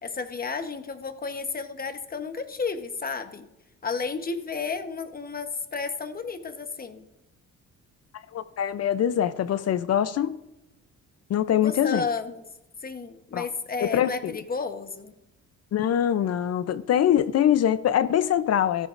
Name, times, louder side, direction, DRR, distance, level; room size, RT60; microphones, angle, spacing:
voice 1, 0.0-3.5 3.8-7.1 11.6-12.4 12.8-15.1, left 4 dB, 30° left, 8 dB, 1.1 m, -32 dB
voice 2, 8.3-10.4 11.3-12.1 13.3-13.5 13.8-14.3 15.7-18.9, left 10 dB, 55° left, 14 dB, 0.6 m, -23 dB
15.0 x 13.5 x 2.6 m, 0.91 s
cardioid pair, 90°, 30 cm